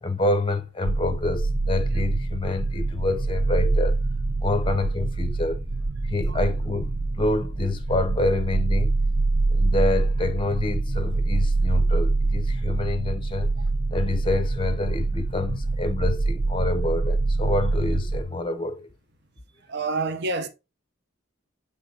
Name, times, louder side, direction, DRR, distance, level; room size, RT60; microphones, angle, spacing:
voice 1, 0.0-4.0 4.4-5.6 6.0-8.9 9.5-13.5 13.9-18.9, left 2 dB, 25° left, 0.7 m, -27 dB
sound 1, 0.8-18.2, right 2 dB, 25° right, 0.4 m, -25 dB
voice 2, 19.7-20.5, right 3 dB, 55° right, 1.0 m, -27 dB
8.2 x 3.5 x 3.9 m
head